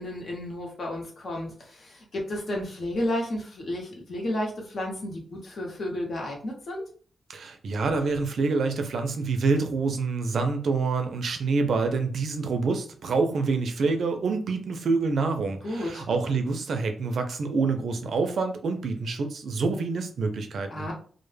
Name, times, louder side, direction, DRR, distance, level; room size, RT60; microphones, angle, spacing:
voice 1, 0.0-6.8 15.6-16.0 20.7-20.9, left 1 dB, 55° left, 0 dB, 0.9 m, -32 dB
voice 2, 7.3-20.9, right 4 dB, 70° right, 6 dB, 0.4 m, -27 dB
2.1 x 2.0 x 3.1 m, 0.43 s
wide cardioid pair, 135°, 0 cm